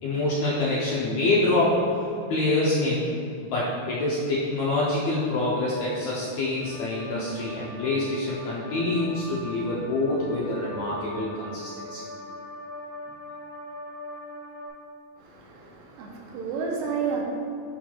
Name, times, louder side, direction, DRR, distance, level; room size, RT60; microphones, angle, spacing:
voice 1, 0.0-3.1 3.4-12.0, left 2 dB, 75° left, -6 dB, 1.6 m, -26 dB
sound 1, 6.6-14.7, left 1 dB, 65° right, 1.4 m, -41 dB
voice 2, 15.2-17.2, right 6 dB, 85° right, -1 dB, 2.5 m, -31 dB
11.0 x 4.5 x 2.3 m, 2.4 s
omnidirectional pair, 3.9 m